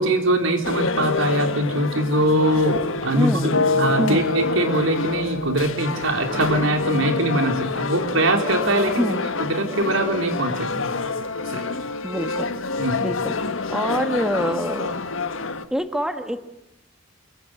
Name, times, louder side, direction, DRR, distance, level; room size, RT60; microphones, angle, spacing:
voice 1, 0.0-9.1 9.4-10.9 11.5-11.6 12.8-13.0, right 1 dB, 85° right, 5 dB, 4.0 m, -22 dB
sound 1, 0.6-15.7, left 4 dB, 85° left, 1.4 m, -28 dB
voice 2, 3.1-3.5 4.0-4.2 9.0-9.2 12.0-12.5 13.0-15.0 15.7-16.4, equal, 5° right, 8 dB, 1.4 m, -25 dB
sound 2, 3.5-7.4, left 4 dB, 70° left, 0.9 m, -27 dB
28.0 x 23.5 x 7.9 m, 0.88 s
head